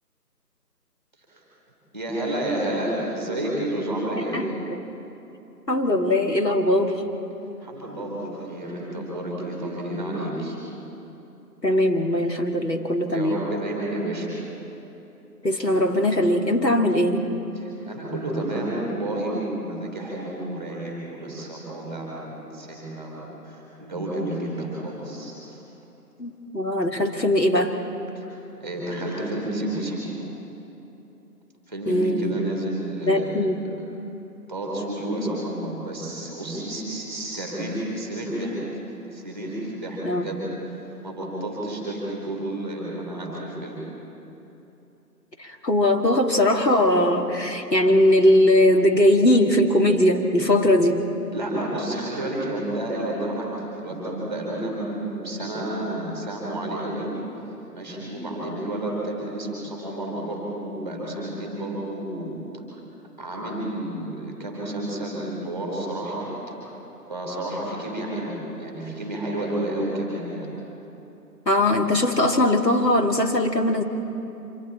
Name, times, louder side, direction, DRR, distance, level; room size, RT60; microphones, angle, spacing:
voice 1, 1.9-4.4 7.6-10.6 13.1-14.4 17.6-23.2 23.4-25.6 28.1-30.2 31.7-33.3 34.5-38.6 39.1-43.8 51.3-57.1 57.7-62.6 63.2-66.6 67.1-70.5, right 1 dB, ahead, -5 dB, 3.8 m, -30 dB
voice 2, 5.7-7.0 11.6-13.4 15.4-17.3 26.2-27.8 31.9-32.4 33.1-33.6 40.0-40.2 45.4-51.1 71.5-73.8, left 1 dB, 90° left, 2 dB, 2.6 m, -20 dB
26.0 x 26.0 x 4.4 m, 3.0 s
figure-of-eight pair, 170°, 48 cm